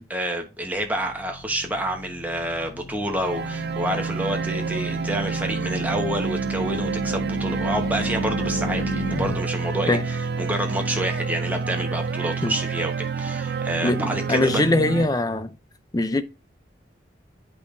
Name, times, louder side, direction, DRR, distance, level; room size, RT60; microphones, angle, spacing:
voice 1, 0.1-14.6, right 1 dB, 10° right, 1.1 m, -28 dB
sound 1, 0.6-9.4, left 3 dB, 85° left, 0.7 m, -35 dB
sound 2, 3.2-15.1, right 5 dB, 60° right, 0.4 m, -28 dB
voice 2, 13.8-15.5 15.9-16.2, left 2 dB, 20° left, 0.5 m, -22 dB
8.6 x 5.2 x 2.6 m
head